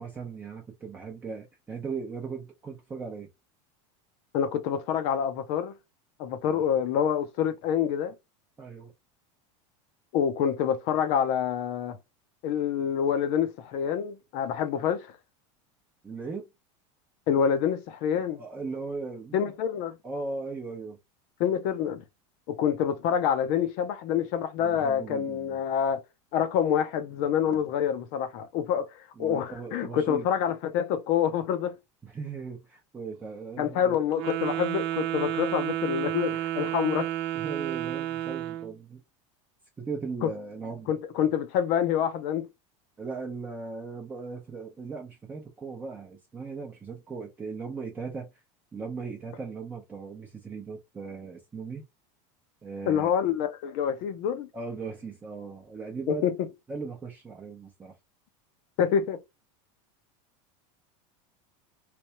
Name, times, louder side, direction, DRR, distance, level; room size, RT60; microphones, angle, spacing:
voice 1, 0.0-3.3 6.4-6.6 8.6-8.9 16.0-16.5 18.3-19.5 20.0-21.0 24.6-25.6 27.5-27.6 29.2-30.3 32.0-33.9 36.6-36.7 37.3-39.0 39.8-40.9 43.0-48.3 48.7-51.8 52.6-53.1 54.5-56.2 56.7-57.9, right 4 dB, 10° right, 0.7 m, -38 dB
voice 2, 4.3-5.7 6.2-8.1 10.1-12.0 12.4-15.1 17.3-18.4 19.3-20.0 21.4-22.0 22.5-26.0 26.3-31.7 33.6-37.1 40.2-40.3 40.9-42.5 52.9-54.5 56.1-56.3 58.8-59.2, left 8 dB, 45° left, 0.7 m, -27 dB
Wind instrument woodwind instrument, 34.1-38.7, right 12 dB, 60° right, 0.8 m, -31 dB
3.4 x 3.3 x 2.9 m
supercardioid pair, 170°, 16 cm